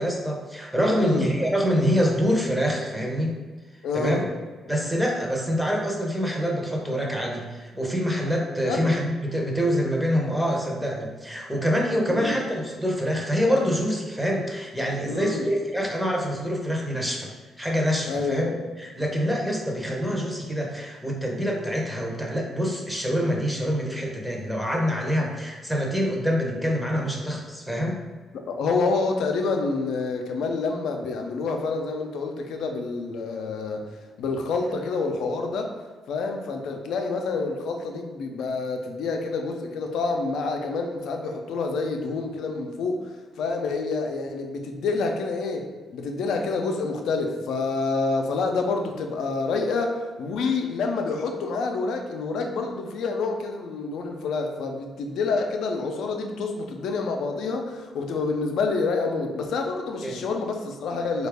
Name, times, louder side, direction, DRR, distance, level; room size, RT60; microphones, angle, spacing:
voice 1, 0.0-3.3 3.9-4.2 4.7-17.3 17.6-28.0 60.0-60.2, equal, 5° right, 0 dB, 0.7 m, -25 dB
voice 2, 0.9-1.3 3.8-4.3 8.6-8.9 12.1-12.4 15.1-15.5 18.1-18.6 28.3-33.8 34.2-35.7 36.1-61.3, left 4 dB, 75° left, 3 dB, 0.5 m, -28 dB
4.1 x 2.3 x 3.4 m, 1.3 s
cardioid pair, 90°, 0 cm